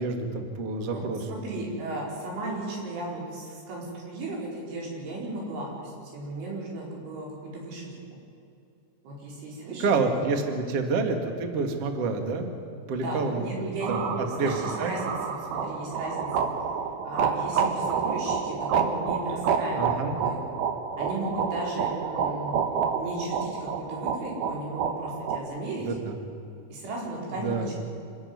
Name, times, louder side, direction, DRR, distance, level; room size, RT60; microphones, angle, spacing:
voice 1, 0.0-1.2 9.8-13.5 13.9-14.1 14.4-15.0 19.8-20.1 25.9-26.2 27.3-27.7, right 4 dB, 50° right, 5 dB, 2.0 m, -28 dB
voice 2, 1.3-8.0 9.0-9.9 10.3-10.4 13.0-16.5 17.0-19.8 20.2-20.5 21.0-22.5 23.0-26.0 26.7-27.7, right 2 dB, 90° right, -3 dB, 7.3 m, -35 dB
sound 1, 13.8-25.4, right 6 dB, 65° right, 2.9 m, -29 dB
26.5 x 14.0 x 9.6 m, 2.6 s
omnidirectional pair, 5.4 m